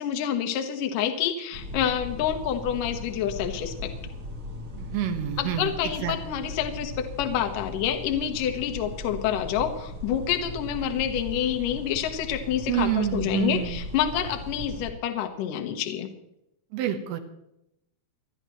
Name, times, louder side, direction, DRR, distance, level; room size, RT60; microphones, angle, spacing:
voice 1, 0.0-3.9 5.4-16.1, left 9 dB, 70° left, 4 dB, 2.3 m, -28 dB
sound 1, 1.5-14.9, left 2 dB, 45° right, 1.7 m, -38 dB
voice 2, 4.7-5.7 6.0-6.2 12.7-13.8 16.7-17.2, right 10 dB, 75° right, 7 dB, 3.0 m, -27 dB
29.0 x 10.5 x 3.1 m, 0.83 s
omnidirectional pair, 5.0 m